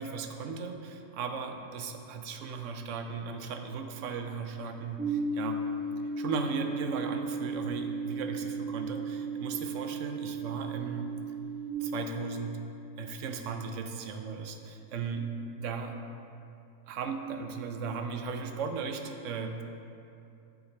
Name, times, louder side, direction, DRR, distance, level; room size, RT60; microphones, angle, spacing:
voice 1, 0.0-5.7 6.2-11.1 11.8-12.6 13.0-15.3 15.6-16.0 16.9-19.6, right 5 dB, 70° right, 5 dB, 0.9 m, -36 dB
sound 1, 5.0-11.7, right 3 dB, 15° right, 1.4 m, -35 dB
9.7 x 3.9 x 4.2 m, 2.7 s
omnidirectional pair, 1.5 m